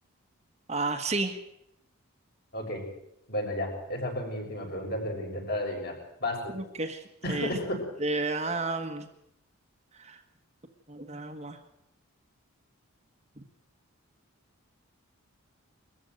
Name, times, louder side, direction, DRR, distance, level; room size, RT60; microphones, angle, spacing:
voice 1, 0.7-1.4 6.5-7.6 8.0-9.1 9.9-10.2 10.9-11.6, right 3 dB, 30° right, 5 dB, 1.5 m, -32 dB
voice 2, 3.3-6.5 7.2-7.8, left 1 dB, 45° left, 1 dB, 6.7 m, -32 dB
22.0 x 14.0 x 9.2 m, 0.81 s
head